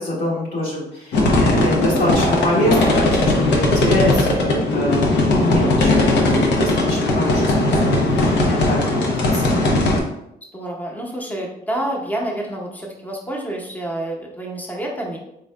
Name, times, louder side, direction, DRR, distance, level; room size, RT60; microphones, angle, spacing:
voice 1, 0.0-7.8 8.1-9.4, left 1 dB, 65° left, -7 dB, 1.3 m, -24 dB
sound 1, 1.1-10.0, left 2 dB, 85° left, 0.7 m, -18 dB
voice 2, 10.5-15.2, right 1 dB, 10° left, -2 dB, 0.8 m, -28 dB
3.6 x 3.6 x 2.2 m, 0.81 s
cardioid pair, 85°, 17 cm